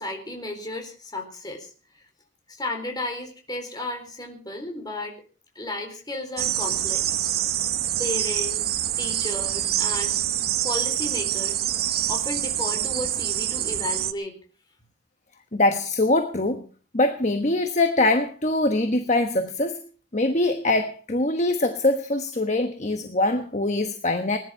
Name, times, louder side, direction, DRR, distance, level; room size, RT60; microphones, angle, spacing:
voice 1, 0.0-2.0 2.5-5.2 5.5-7.3 8.0-10.1 10.6-14.4, left 2 dB, 20° left, 3 dB, 4.1 m, -34 dB
sound 1, 6.4-14.1, right 11 dB, 50° right, 0.9 m, -26 dB
voice 2, 15.5-16.6 16.9-19.8 20.1-24.4, left 2 dB, 35° left, 7 dB, 1.2 m, -23 dB
20.0 x 11.0 x 5.6 m, 0.39 s
head